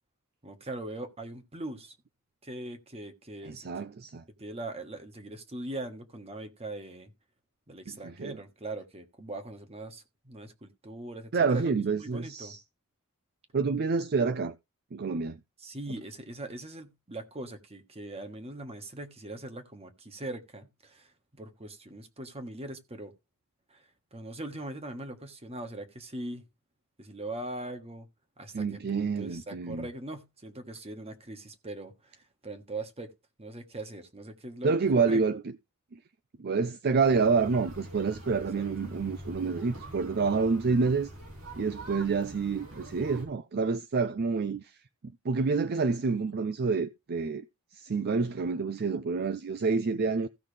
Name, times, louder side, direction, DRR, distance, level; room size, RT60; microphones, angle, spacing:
voice 1, 0.4-1.9 2.4-3.8 4.4-7.1 7.7-12.6 15.6-23.1 23.7-26.4 27.0-28.1 28.4-33.1 33.4-35.2 38.6-38.7, right 2 dB, 30° right, 1.5 m, -41 dB
voice 2, 3.4-4.2 7.9-8.4 11.3-12.6 13.5-14.6 14.9-15.4 28.5-29.9 34.6-35.4 35.9-36.0 36.4-41.1 41.6-44.8 45.2-47.4 47.7-50.3, right 4 dB, 50° right, 0.5 m, -28 dB
sound 1, 37.0-43.3, right 1 dB, 85° right, 5.1 m, -44 dB
16.0 x 5.7 x 3.3 m
head